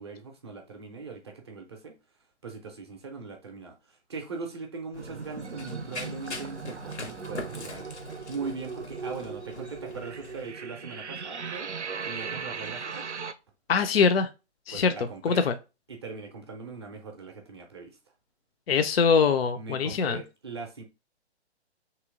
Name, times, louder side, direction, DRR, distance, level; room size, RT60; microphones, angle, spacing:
voice 1, 0.0-2.0 2.4-7.9 8.3-11.7 12.1-13.0 14.7-15.4 15.9-18.0 19.5-20.8, right 4 dB, 25° right, 0.5 m, -40 dB
Run, 4.9-10.5, left 2 dB, 80° left, 0.9 m, -42 dB
sound 1, 5.0-13.3, right 5 dB, 90° right, 0.5 m, -38 dB
voice 2, 13.7-14.3 14.7-14.9 15.2-15.5 18.7-20.2, left 5 dB, 60° left, 0.5 m, -23 dB
3.0 x 3.0 x 3.6 m
figure-of-eight pair, 130°, 34 cm